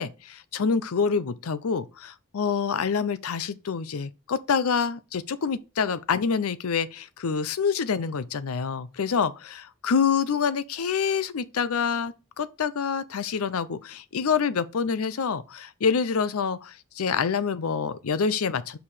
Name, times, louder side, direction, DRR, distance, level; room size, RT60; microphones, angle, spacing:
voice 1, 0.0-18.8, left 6 dB, 85° left, 0.5 m, -27 dB
5.5 x 4.7 x 4.9 m
head